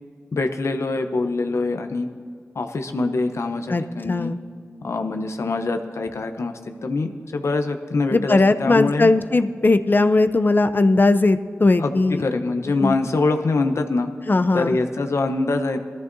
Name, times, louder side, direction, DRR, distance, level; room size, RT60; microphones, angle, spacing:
voice 1, 0.3-2.1 2.5-4.3 4.8-9.1 11.8-14.1 14.5-15.8, left 3 dB, 80° left, 6 dB, 0.8 m, -24 dB
voice 2, 3.7-4.4 8.1-12.2 12.8-13.0 14.3-14.8, left 2 dB, 45° left, 11 dB, 0.5 m, -18 dB
19.0 x 14.0 x 2.7 m, 2.1 s
cardioid pair, 50°, 5 cm